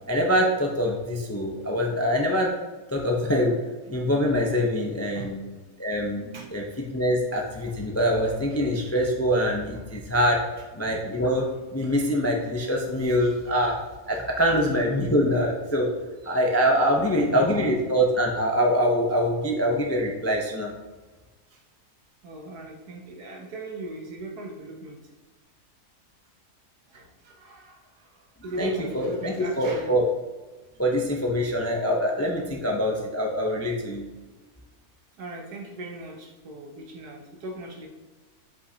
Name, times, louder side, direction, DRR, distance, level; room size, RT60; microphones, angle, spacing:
voice 1, 0.1-2.5 2.9-3.6 3.9-5.4 5.8-6.6 6.9-10.4 10.7-11.5 11.7-13.8 14.1-15.9 16.2-20.7 28.6-30.0 30.8-34.1, equal, 20° left, 0 dB, 0.3 m, -24 dB
voice 2, 13.0-13.4 14.2-14.6 16.9-17.7 21.5-21.6 22.2-25.0 26.9-30.0 35.2-37.9, right 1 dB, 80° right, 1 dB, 1.7 m, -39 dB
8.1 x 5.4 x 2.8 m, 1.2 s
omnidirectional pair, 1.6 m